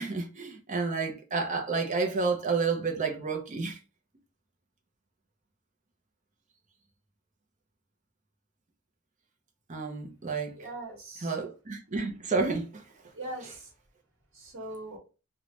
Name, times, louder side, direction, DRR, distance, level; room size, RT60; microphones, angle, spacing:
voice 1, 0.0-3.8 9.7-10.6 11.2-12.8, right 4 dB, 35° right, 0.6 m, -30 dB
voice 2, 10.5-11.4 13.1-13.7 14.3-15.0, right 2 dB, 65° right, 1.3 m, -41 dB
3.1 x 2.3 x 2.8 m
head